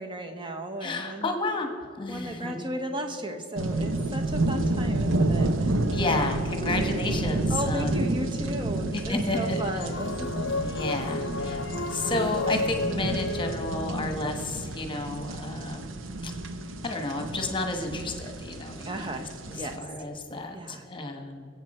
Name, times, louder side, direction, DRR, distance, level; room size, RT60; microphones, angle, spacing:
voice 1, 0.0-1.3 2.1-5.8 7.5-10.7 11.7-12.1 18.8-19.3 19.6-19.8 20.5-20.8, right 1 dB, 25° right, 4 dB, 1.1 m, -35 dB
voice 2, 0.8-2.6 5.9-7.9 8.9-9.6 10.6-11.6 11.9-15.9 16.2-16.3 16.8-21.5, left 2 dB, 25° left, 4 dB, 1.3 m, -32 dB
sound 1, 3.6-19.8, right 2 dB, 75° right, 0.8 m, -30 dB
sound 2, 5.8-7.2 9.5-14.7, left 3 dB, 65° left, 0.6 m, -34 dB
22.5 x 8.5 x 4.4 m, 2.5 s
head